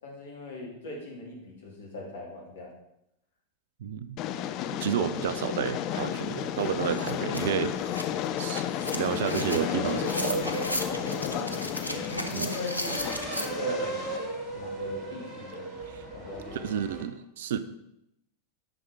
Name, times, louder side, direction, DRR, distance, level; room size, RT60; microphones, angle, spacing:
voice 1, 0.0-2.7 10.9-14.0 14.5-15.7 16.1-16.8, left 2 dB, 65° left, -2 dB, 3.3 m, -40 dB
voice 2, 3.8-4.2 4.7-7.8 8.4-10.5 12.3-12.5 15.9-16.0 16.5-17.6, right 9 dB, 55° right, 12 dB, 0.6 m, -31 dB
Train, 4.2-14.2, left 10 dB, 40° left, 0.5 m, -33 dB
sound 1, 6.2-6.3 6.6-13.5, left 1 dB, 90° left, 0.9 m, -36 dB
sound 2, 8.8-17.0, right 3 dB, 30° right, 2.6 m, -37 dB
10.0 x 6.5 x 4.8 m, 0.83 s
figure-of-eight pair, 90°, 0 cm